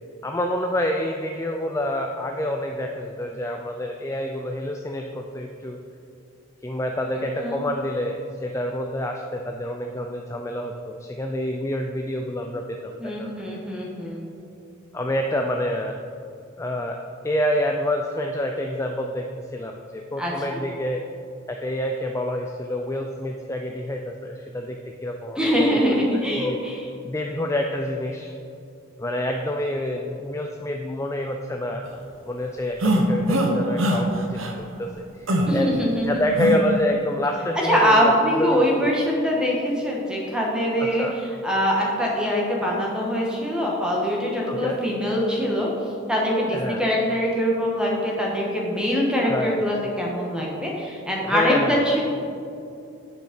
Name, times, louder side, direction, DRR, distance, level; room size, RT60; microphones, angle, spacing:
voice 1, 0.2-5.8 6.6-13.3 14.9-16.0 16.6-17.0 17.2-21.0 21.5-26.0 26.3-26.6 27.0-28.3 29.0-31.9 32.3-35.7 36.1-38.9 40.8-41.1 44.5-44.8 46.5-46.8 49.2-49.7 51.2-52.0, left 1 dB, 15° left, 3 dB, 0.3 m, -27 dB
voice 2, 13.0-14.2 20.2-20.6 25.4-26.9 35.5-36.2 37.6-41.1 41.4-45.7 46.1-52.0, equal, 5° right, -3 dB, 1.3 m, -23 dB
sound 1, 32.8-33.5 33.8-34.0 34.4-34.5 35.3-35.5 36.4-36.6, right 1 dB, 70° right, 0.9 m, -21 dB
8.4 x 6.2 x 5.2 m, 2.6 s
head